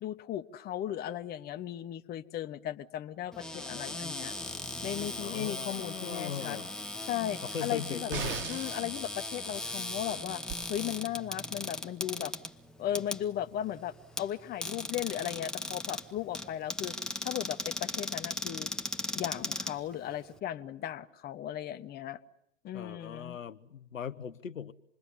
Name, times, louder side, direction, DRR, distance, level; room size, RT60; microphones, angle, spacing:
voice 1, 0.0-4.4 4.8-6.6 7.0-8.1 8.5-10.4 10.7-12.3 12.8-16.9 17.2-18.7 19.2-22.2 22.6-23.4, left 11 dB, 25° left, 1.1 m, -36 dB
Cupboard open or close, 3.3-20.4, left 1 dB, ahead, 1.1 m, -38 dB
voice 2, 5.2-6.7 7.4-8.5 22.7-24.7, left 8 dB, 85° left, 1.0 m, -39 dB
sound 1, 8.1-8.9 10.5-10.6, right 7 dB, 30° right, 2.2 m, -37 dB
27.5 x 21.5 x 9.8 m
hypercardioid pair, 110°, 38 cm